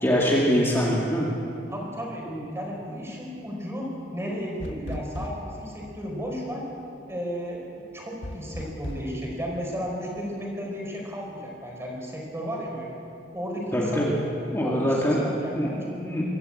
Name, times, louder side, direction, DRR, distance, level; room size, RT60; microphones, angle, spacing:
voice 1, 0.0-1.3 2.3-2.4 13.7-14.1 14.5-16.2, equal, 15° left, -5 dB, 2.2 m, -24 dB
voice 2, 1.7-2.3 2.5-6.6 7.1-7.6 7.9-13.0 13.3-14.1 14.6-15.9, equal, 15° right, -1 dB, 4.7 m, -34 dB
sound 1, 4.6-5.6 8.2-9.1, left 1 dB, 70° left, 1.5 m, -36 dB
24.0 x 13.5 x 8.7 m, 2.6 s
head